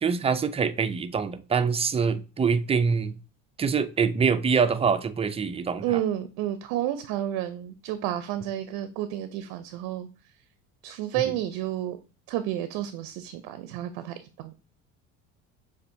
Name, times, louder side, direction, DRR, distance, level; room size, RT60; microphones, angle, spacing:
voice 1, 0.0-3.2 3.6-6.0, right 5 dB, 15° right, 0.4 m, -25 dB
voice 2, 5.8-10.1 10.8-12.0 12.3-14.5, right 12 dB, 65° right, 0.6 m, -31 dB
6.7 x 2.6 x 2.6 m
hypercardioid pair, 70°, 37 cm